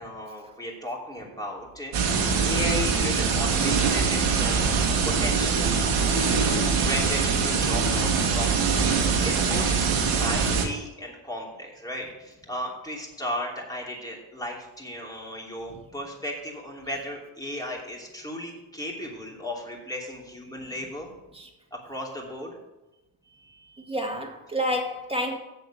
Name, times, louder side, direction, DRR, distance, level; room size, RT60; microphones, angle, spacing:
voice 1, 0.0-4.7 5.0-5.7 6.5-8.8 9.2-9.7 10.2-21.2 21.7-22.6 23.3-23.9, equal, 5° left, 3.0 m, -35 dB
sound 1, 1.9-10.6, right 5 dB, 85° right, 1.9 m, -23 dB
voice 2, 23.8-25.4, equal, 10° right, 2.1 m, -29 dB
7.8 x 6.9 x 6.7 m
cardioid pair, 85°, 50 cm